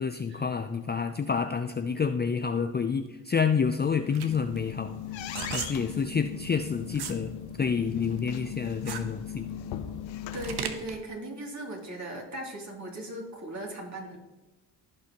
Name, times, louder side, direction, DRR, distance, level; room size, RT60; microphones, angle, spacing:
voice 1, 0.0-5.0 5.5-7.3 7.6-9.5, left 6 dB, 20° left, 7 dB, 0.5 m, -28 dB
sound 1, 3.6-7.2 7.6-11.0, right 7 dB, 55° right, 1.1 m, -38 dB
sound 2, 4.1-10.6, left 9 dB, 75° left, 0.9 m, -38 dB
voice 2, 10.3-14.2, right 1 dB, 35° right, -1 dB, 2.9 m, -38 dB
15.5 x 5.5 x 3.0 m, 1.1 s
supercardioid pair, 70°, 46 cm